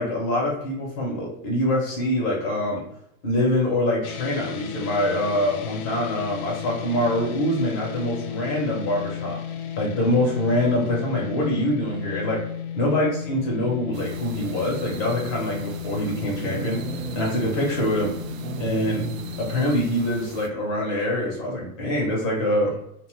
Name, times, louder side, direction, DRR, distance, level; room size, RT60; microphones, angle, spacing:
voice 1, 0.0-2.8 3.2-9.4 9.8-12.5 12.8-16.8 17.2-18.1 18.6-19.0 19.4-22.8, left 1 dB, 20° left, -2 dB, 0.4 m, -24 dB
sound 1, 4.0-19.6, left 9 dB, 90° left, 0.5 m, -34 dB
sound 2, 13.9-20.5, right 5 dB, 70° right, 0.5 m, -36 dB
2.8 x 2.0 x 3.0 m, 0.78 s
hypercardioid pair, 135°, 42 cm